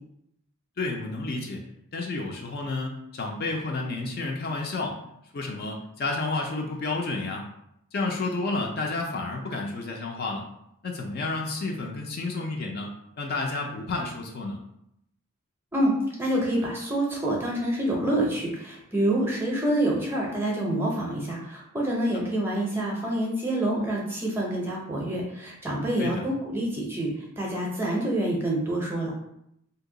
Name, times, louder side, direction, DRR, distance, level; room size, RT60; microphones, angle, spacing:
voice 1, 0.8-1.6 1.9-5.0 5.3-7.4 7.9-10.4 10.8-12.9 13.2-14.6 26.0-26.2, left 3 dB, 45° left, 1 dB, 0.3 m, -30 dB
voice 2, 15.7-27.1 27.4-29.1, right 1 dB, 10° right, -3 dB, 0.6 m, -27 dB
2.7 x 2.1 x 3.7 m, 0.77 s
head